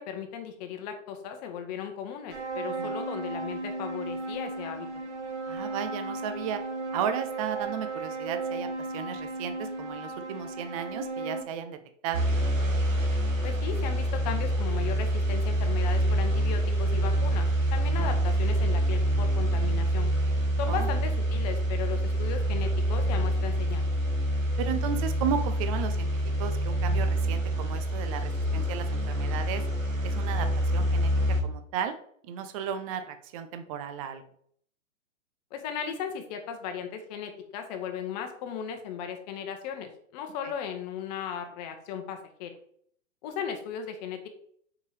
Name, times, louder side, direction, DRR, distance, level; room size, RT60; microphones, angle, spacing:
voice 1, 0.0-4.9 13.4-20.1 20.6-23.9 35.5-42.5 43.2-44.3, left 7 dB, 30° left, 6 dB, 1.1 m, -36 dB
sound 1, 2.3-11.4, right 3 dB, 60° right, 1.2 m, -35 dB
voice 2, 2.7-3.0 5.5-6.6 6.9-8.7 8.9-11.8 12.0-12.2 18.0-18.3 20.7-20.9 24.6-29.7 30.0-31.9 32.3-34.2, right 8 dB, 25° right, 9 dB, 0.6 m, -34 dB
sound 2, 12.1-31.4, right 1 dB, 75° right, 1.5 m, -26 dB
6.4 x 4.9 x 3.3 m, 0.63 s
figure-of-eight pair, 110°, 39 cm